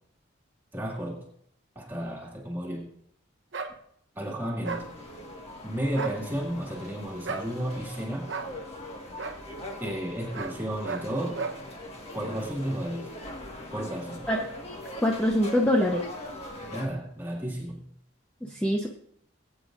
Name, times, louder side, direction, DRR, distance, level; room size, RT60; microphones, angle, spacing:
voice 1, 0.7-1.2 1.8-2.9 4.2-4.9 5.6-8.4 9.8-11.4 12.1-13.1 13.7-14.3 16.7-17.8, equal, 10° right, 2.3 m, -33 dB
sound 1, 3.5-3.7 4.6-4.9 5.9-6.2 7.2-7.5 8.3-8.5 9.2-9.4 10.3-10.6 10.8-11.1 11.3-11.6, right 5 dB, 60° right, 1.0 m, -33 dB
sound 2, 4.6-16.9, left 1 dB, 30° left, 1.7 m, -42 dB
voice 2, 15.0-16.0 18.4-18.9, left 1 dB, 5° left, 0.9 m, -24 dB
20.5 x 9.1 x 2.6 m
head